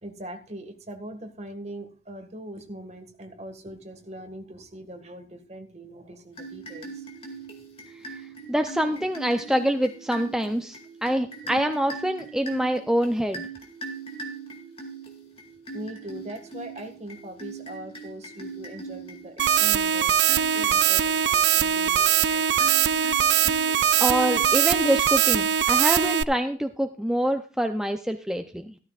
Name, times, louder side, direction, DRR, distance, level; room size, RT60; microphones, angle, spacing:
voice 1, 0.0-7.1 15.7-22.6, right 1 dB, 40° right, 6 dB, 1.7 m, -41 dB
sound 1, 6.3-25.5, right 3 dB, 30° left, 2.3 m, -41 dB
voice 2, 8.1-13.5 24.0-28.8, equal, 5° right, 6 dB, 0.5 m, -26 dB
sound 2, 19.4-26.2, right 9 dB, 75° right, 0.4 m, -21 dB
14.5 x 13.0 x 2.4 m, 0.38 s
head